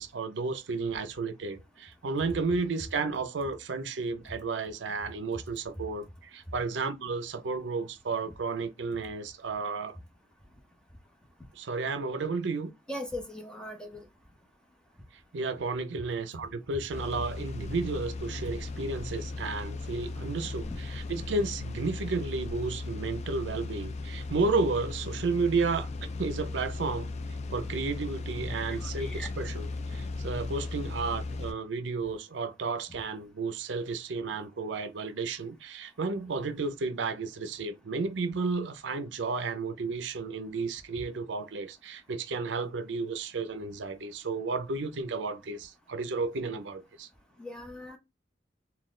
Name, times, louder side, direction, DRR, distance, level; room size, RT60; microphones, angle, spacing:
voice 1, 0.0-10.0 11.5-12.7 15.3-25.9 26.2-27.1 27.5-47.1, right 4 dB, 75° right, 0.5 m, -32 dB
voice 2, 12.9-14.0 20.7-20.8 28.8-29.3 47.4-48.0, left 1 dB, 5° left, 0.8 m, -39 dB
sound 1, 16.9-31.5, left 3 dB, 35° left, 0.3 m, -37 dB
4.1 x 2.2 x 3.6 m
head